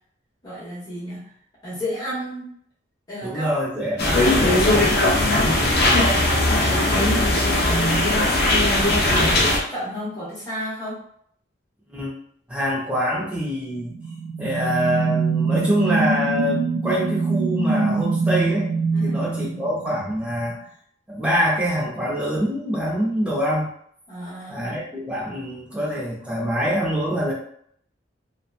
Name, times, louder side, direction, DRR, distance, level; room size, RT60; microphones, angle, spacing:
voice 1, 0.4-1.3 1.6-2.5 3.1-3.5 4.0-5.6 5.9-11.0 18.9-19.3 24.1-24.8, left 1 dB, 20° left, -10 dB, 1.1 m, -33 dB
voice 2, 3.2-5.7 11.9-12.2 12.5-13.9 14.4-18.7 19.0-20.6 21.1-23.7 24.5-27.3, equal, 5° right, -5 dB, 0.6 m, -25 dB
sound 1, 4.0-9.6, left 1 dB, 55° left, 0.5 m, -19 dB
sound 2, 13.8-20.3, right 4 dB, 85° right, 0.4 m, -23 dB
2.9 x 2.1 x 2.4 m, 0.65 s
head